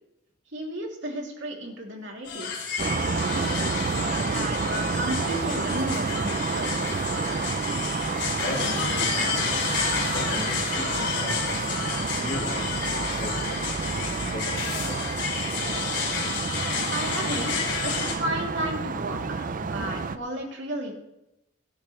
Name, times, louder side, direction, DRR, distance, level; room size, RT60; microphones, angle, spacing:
voice 1, 0.5-6.8 16.9-20.9, right 1 dB, 60° right, 0 dB, 2.9 m, -34 dB
sound 1, 2.3-18.1, left 5 dB, 55° left, 3.0 m, -31 dB
sound 2, 2.8-20.2, right 4 dB, 40° right, 0.5 m, -29 dB
voice 2, 8.1-9.7 10.1-11.8 12.1-13.7 14.1-15.2, left 2 dB, 40° left, 2 dB, 1.8 m, -38 dB
23.5 x 9.3 x 3.2 m, 0.90 s
head